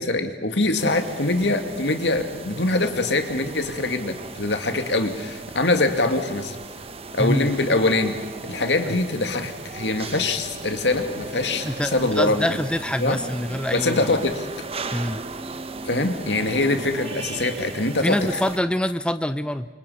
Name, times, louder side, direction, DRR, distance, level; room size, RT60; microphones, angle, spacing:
voice 1, 0.0-6.6 7.1-8.2 8.4-12.6 13.0-13.2 13.7-14.5 15.8-18.4, left 2 dB, 75° left, 6 dB, 2.3 m, -23 dB
sound 1, 0.8-18.6, right 3 dB, 35° right, 1.2 m, -37 dB
voice 2, 11.6-14.1 14.9-15.2 18.0-19.7, left 1 dB, 5° left, 10 dB, 0.7 m, -25 dB
29.0 x 25.5 x 5.8 m, 1.2 s
head